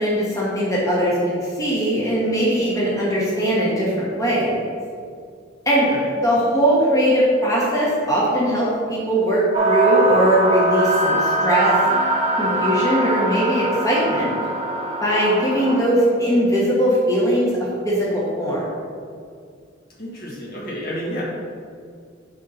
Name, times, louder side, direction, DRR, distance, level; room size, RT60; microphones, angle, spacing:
voice 1, 0.0-4.6 5.6-5.9 6.2-11.7 12.4-14.3 15.0-17.6 17.8-18.7, equal, 15° left, -7 dB, 1.3 m, -20 dB
sound 1, 9.5-15.8, right 2 dB, 35° right, 1.1 m, -22 dB
voice 2, 20.0-21.2, equal, 50° left, -5 dB, 1.5 m, -30 dB
5.5 x 3.9 x 5.7 m, 2.2 s
head